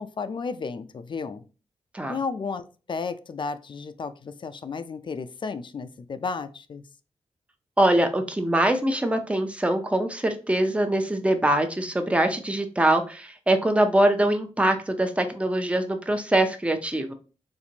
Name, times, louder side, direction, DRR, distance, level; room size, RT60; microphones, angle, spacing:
voice 1, 0.0-1.4 2.1-6.8, left 4 dB, 45° left, 11 dB, 0.3 m, -33 dB
voice 2, 7.8-17.1, right 1 dB, 10° right, 6 dB, 0.5 m, -23 dB
4.2 x 2.5 x 2.8 m, 0.35 s
wide cardioid pair, 110°, 12 cm